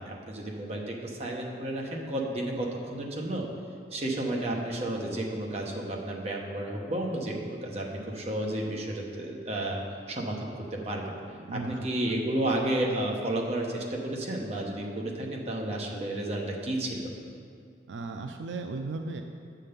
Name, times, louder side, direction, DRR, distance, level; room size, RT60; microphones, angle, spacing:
voice 1, 0.0-3.5 3.9-9.8 10.1-11.2 11.5-17.2, right 1 dB, 35° right, -1 dB, 1.0 m, -32 dB
voice 2, 11.5-11.9 17.9-19.2, right 3 dB, 80° right, 5 dB, 0.4 m, -35 dB
9.0 x 3.8 x 6.7 m, 2.3 s
head